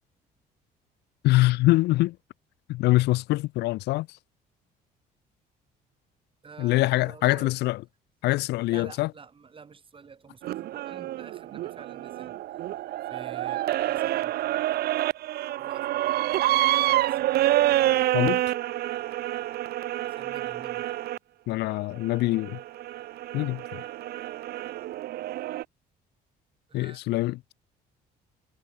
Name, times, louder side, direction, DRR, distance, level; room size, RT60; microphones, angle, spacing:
voice 1, 1.2-2.2 2.7-4.1 6.6-7.8 8.2-9.1 18.1-18.4 21.5-22.6 23.3-23.8 26.7-27.5, left 19 dB, 80° left, 0.8 m, -24 dB
voice 2, 6.4-7.5 8.7-12.4 13.1-14.7 15.6-17.4 20.0-20.8 26.7-27.0, right 5 dB, 30° right, 5.9 m, -48 dB
sound 1, 10.4-21.2 22.0-25.6, right 14 dB, 65° right, 0.9 m, -28 dB
cardioid pair, 110°, 17 cm